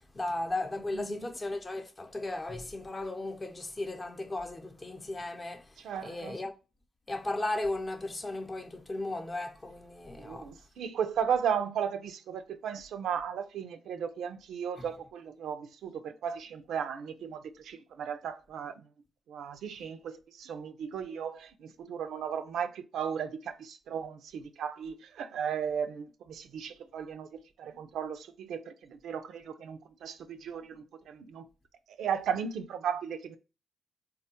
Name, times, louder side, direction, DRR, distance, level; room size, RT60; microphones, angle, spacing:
voice 1, 0.0-5.7 6.0-6.5 7.1-10.5 14.8-14.9, left 2 dB, 30° left, 0.6 m, -36 dB
voice 2, 0.9-1.3 5.8-6.4 10.2-18.7 19.3-31.5 32.0-33.4, right 7 dB, 75° right, 0.3 m, -35 dB
3.5 x 2.2 x 2.8 m
supercardioid pair, 50°, 0 cm